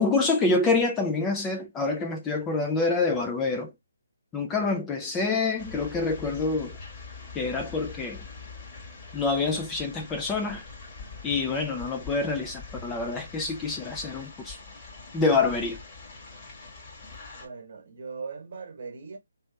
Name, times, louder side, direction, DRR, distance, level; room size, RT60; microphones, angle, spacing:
voice 1, 0.0-3.7 4.3-6.8 7.3-8.2 9.1-10.6 11.2-14.6 15.1-15.8, left 3 dB, 10° left, 0.5 m, -26 dB
sound 1, 5.6-17.5, left 4 dB, 30° left, 1.8 m, -43 dB
voice 2, 17.4-19.2, right 5 dB, 45° right, 1.2 m, -39 dB
3.1 x 2.9 x 3.2 m
figure-of-eight pair, 145°, 0 cm